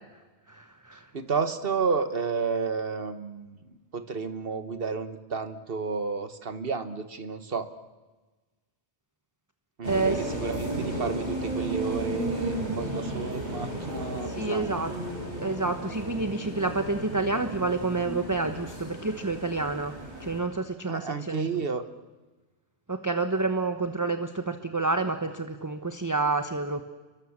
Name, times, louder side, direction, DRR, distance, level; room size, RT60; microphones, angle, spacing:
voice 1, 0.5-1.1 9.9-10.2 14.2-14.9 15.3-21.5 22.9-26.8, right 3 dB, 20° right, 8 dB, 1.0 m, -29 dB
voice 2, 1.1-3.6 3.9-7.7 9.8-14.8 20.9-21.8, right 5 dB, 55° right, 10 dB, 1.6 m, -31 dB
sound 1, 9.8-20.4, right 1 dB, 40° right, 5.8 m, -34 dB
30.0 x 23.0 x 7.4 m, 1.2 s
omnidirectional pair, 1.1 m